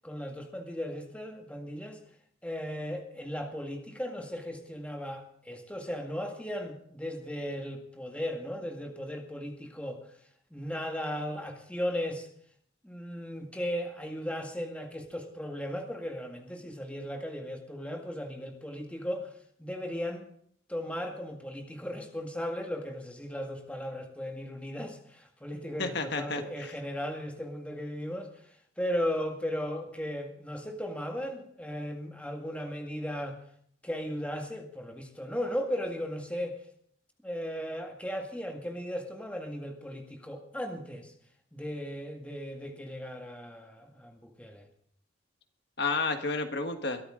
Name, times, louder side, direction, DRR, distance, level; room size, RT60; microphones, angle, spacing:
voice 1, 0.0-2.0 2.4-10.0 10.5-12.3 12.8-19.3 19.6-20.2 20.7-28.3 28.8-33.4 33.8-36.6 37.2-41.1 41.5-44.7, equal, 5° left, 3 dB, 2.0 m, -36 dB
voice 2, 25.8-26.7 45.8-47.0, left 3 dB, 55° left, 6 dB, 1.5 m, -31 dB
22.5 x 13.0 x 3.8 m, 0.63 s
head